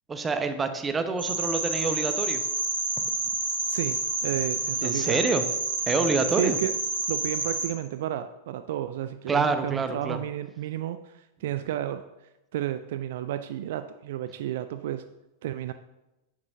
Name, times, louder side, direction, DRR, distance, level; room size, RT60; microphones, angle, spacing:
voice 1, 0.1-2.4 4.8-5.4 5.9-6.6 9.3-10.2, right 4 dB, 15° right, 8 dB, 0.8 m, -26 dB
sound 1, 1.2-7.7, right 3 dB, 70° right, 1.7 m, -29 dB
voice 2, 3.7-5.2 6.0-6.7 7.1-12.0 12.5-15.0 15.4-15.7, right 12 dB, 55° right, 11 dB, 0.3 m, -32 dB
9.7 x 8.7 x 2.7 m, 0.98 s
figure-of-eight pair, 90°, 0 cm